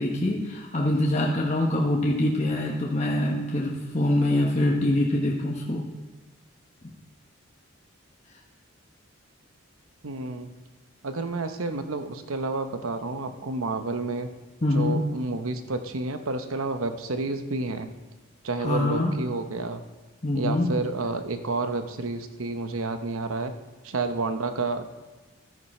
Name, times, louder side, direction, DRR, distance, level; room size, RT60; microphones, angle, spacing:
voice 1, 0.0-5.8 14.6-15.0 18.6-19.1 20.2-20.7, left 1 dB, 30° left, -2 dB, 1.0 m, -24 dB
voice 2, 10.0-10.5 11.0-14.3 14.7-17.9 18.4-19.8 20.3-23.5 23.8-24.9, right 3 dB, 85° right, 8 dB, 0.9 m, -30 dB
13.5 x 9.4 x 4.3 m, 1.3 s
head